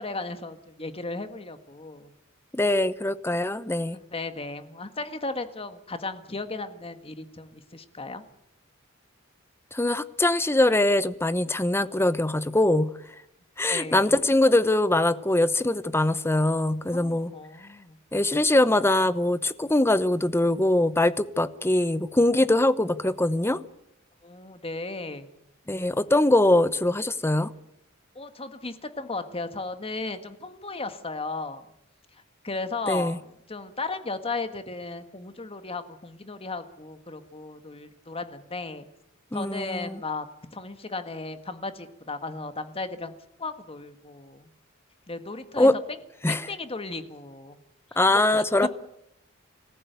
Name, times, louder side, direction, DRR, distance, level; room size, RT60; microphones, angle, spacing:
voice 1, 0.0-2.1 3.9-8.2 13.7-14.1 16.9-18.0 24.2-25.3 28.1-31.6 32.4-33.2 33.5-38.9 39.3-40.3 40.5-43.1 43.4-44.5 45.1-45.7 46.3-47.6 47.9-48.7, left 3 dB, 30° left, 1.7 m, -35 dB
voice 2, 2.5-4.0 9.7-12.9 13.6-17.3 18.1-23.6 25.7-27.5 32.9-33.2 39.3-40.0 45.6-45.7 46.2-46.4 48.0-48.7, left 1 dB, 10° left, 0.8 m, -22 dB
26.0 x 15.0 x 9.3 m
head